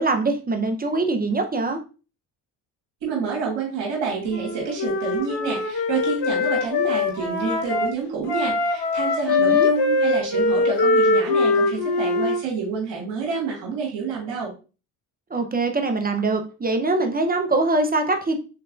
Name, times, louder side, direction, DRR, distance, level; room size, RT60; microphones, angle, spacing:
voice 1, 0.0-1.8 9.3-9.7 15.3-18.4, right 3 dB, 20° right, 6 dB, 0.9 m, -23 dB
voice 2, 3.0-14.5, right 5 dB, 80° right, -2 dB, 1.8 m, -28 dB
Wind instrument woodwind instrument, 4.3-7.9 8.3-12.4, left 3 dB, 70° left, 1.2 m, -22 dB
4.6 x 3.5 x 2.6 m, 0.34 s
supercardioid pair, 60°, 43 cm